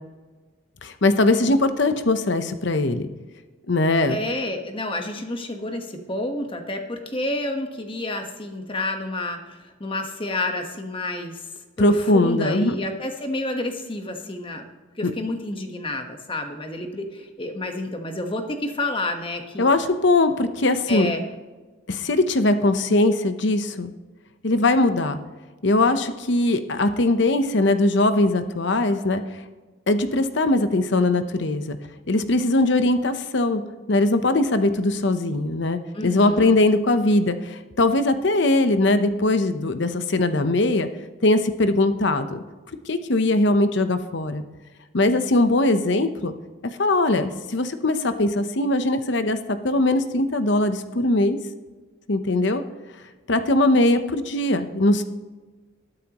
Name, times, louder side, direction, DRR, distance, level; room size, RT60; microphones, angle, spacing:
voice 1, 0.8-3.1 3.7-4.2 11.8-12.7 15.0-15.1 19.6-21.1 21.9-23.9 24.4-25.2 25.6-29.2 29.9-31.8 32.1-33.6 33.9-40.9 41.2-42.4 42.9-44.4 44.9-46.3 46.6-51.4 52.1-52.6 53.3-55.0, left 2 dB, 60° left, 9 dB, 0.9 m, -20 dB
voice 2, 4.1-11.5 11.8-14.7 15.0-19.6 20.9-21.2 35.9-36.6, left 2 dB, 25° left, 5 dB, 1.3 m, -29 dB
20.5 x 9.1 x 3.0 m, 1.3 s
head